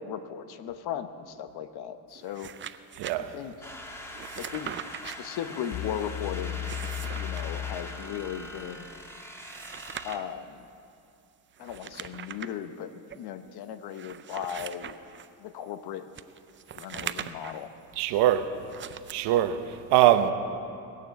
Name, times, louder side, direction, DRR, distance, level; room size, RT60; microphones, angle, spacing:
voice 1, 0.0-2.5 3.2-3.5 4.4-4.7 5.0-6.6 7.1-8.9 10.0-10.7 11.6-12.9 13.2-15.0 15.4-16.1 16.7-17.7, left 9 dB, 65° left, 0.9 m, -37 dB
Turning book pages, 2.1-3.1 4.1-5.2 6.5-7.4 9.2-10.3 11.6-12.6 13.1-13.2 13.9-15.3 16.1-17.6 18.6-19.1, right 9 dB, 30° right, 0.5 m, -41 dB
voice 2, 3.0-3.3 18.0-18.5 19.1-20.3, right 12 dB, 75° right, 0.9 m, -22 dB
sound 1, 3.6-10.2, left 1 dB, 5° left, 1.3 m, -42 dB
sound 2, 5.7-8.6, left 11 dB, 40° left, 0.4 m, -36 dB
19.5 x 6.8 x 8.1 m
supercardioid pair, 90°, 41 cm